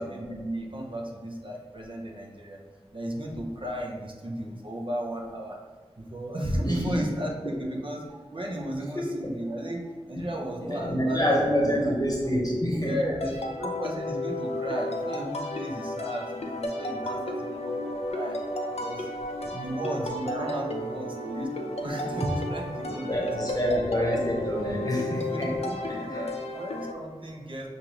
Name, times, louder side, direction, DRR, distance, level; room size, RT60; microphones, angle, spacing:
voice 1, 0.0-2.6 2.9-5.6 6.0-8.1 8.3-9.8 10.1-11.9 12.9-18.4 18.8-19.1 19.5-23.3 25.3-27.7, right 1 dB, 55° right, 0 dB, 0.8 m, -34 dB
voice 2, 6.6-7.0 8.9-9.0 10.2-10.3 10.6-13.0 22.8-25.5 26.1-26.3, equal, 35° left, -4 dB, 0.9 m, -27 dB
sound 1, 13.2-26.9, left 1 dB, 85° left, 0.5 m, -33 dB
6.5 x 2.6 x 3.0 m, 1.4 s
wide cardioid pair, 60°, 10 cm